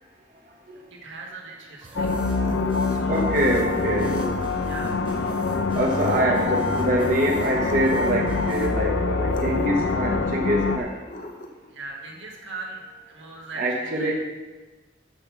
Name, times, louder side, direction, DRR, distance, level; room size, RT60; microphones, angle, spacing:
voice 1, 0.9-2.1 2.9-3.2 4.7-5.0 6.2-6.4 11.7-14.1, right 3 dB, 85° right, -1 dB, 1.9 m, -39 dB
sound 1, 1.8-8.7, right 2 dB, 25° right, 1.3 m, -43 dB
sound 2, 2.0-10.8, left 3 dB, 85° left, 0.7 m, -25 dB
sound 3, 2.4-2.8 4.1-4.7 5.8-6.4 7.5-8.1 9.3-9.9 11.0-11.7, left 2 dB, 45° left, 0.8 m, -39 dB
voice 2, 3.1-4.6 5.7-11.0 13.5-14.1, right 1 dB, 45° right, -2 dB, 1.2 m, -25 dB
6.8 x 5.9 x 7.1 m, 1.2 s
head